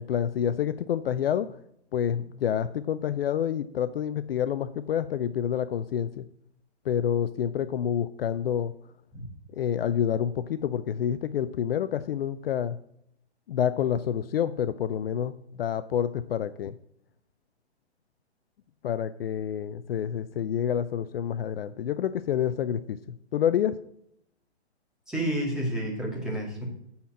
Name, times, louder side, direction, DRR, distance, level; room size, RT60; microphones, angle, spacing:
voice 1, 0.0-1.5 1.9-6.2 6.9-8.7 9.5-12.8 13.5-15.3 15.6-16.7 18.8-23.0 23.3-23.8, left 9 dB, 60° left, 13 dB, 0.5 m, -28 dB
voice 2, 25.1-26.6, right 1 dB, ahead, -4 dB, 2.3 m, -30 dB
9.6 x 4.3 x 7.5 m, 0.73 s
hypercardioid pair, 150°, 34 cm